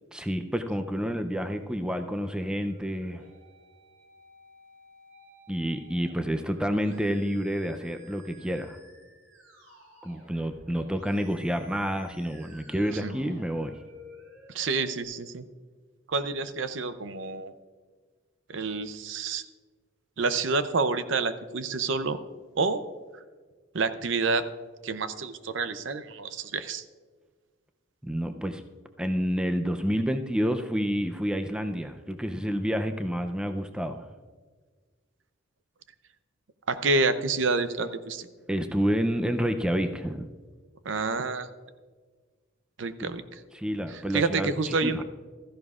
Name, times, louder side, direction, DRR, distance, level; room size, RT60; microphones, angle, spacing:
voice 1, 0.1-3.2 5.5-8.8 10.0-13.8 28.0-28.6 29.0-34.1 38.5-40.3 43.0-43.1 43.5-45.0, equal, 5° right, 7 dB, 0.5 m, -29 dB
Musical instrument, 2.0-15.0, equal, 90° right, 4.3 m, -54 dB
voice 2, 14.5-15.4 16.1-17.5 18.5-19.4 20.2-22.2 22.6-22.8 23.7-24.4 24.8-26.8 36.7-38.3 40.8-41.5 42.8-43.4 44.1-45.0, right 4 dB, 65° right, 12 dB, 0.6 m, -28 dB
15.5 x 14.0 x 2.4 m, 1.5 s
head